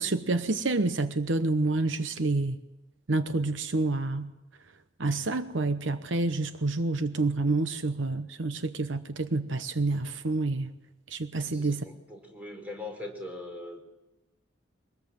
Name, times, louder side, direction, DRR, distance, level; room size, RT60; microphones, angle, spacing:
voice 1, 0.0-2.6 3.1-4.3 5.0-10.7 11.1-11.8, right 3 dB, 70° right, 10 dB, 0.9 m, -28 dB
voice 2, 11.4-13.8, left 2 dB, 10° right, 2 dB, 4.6 m, -41 dB
24.0 x 19.5 x 7.8 m, 0.99 s
head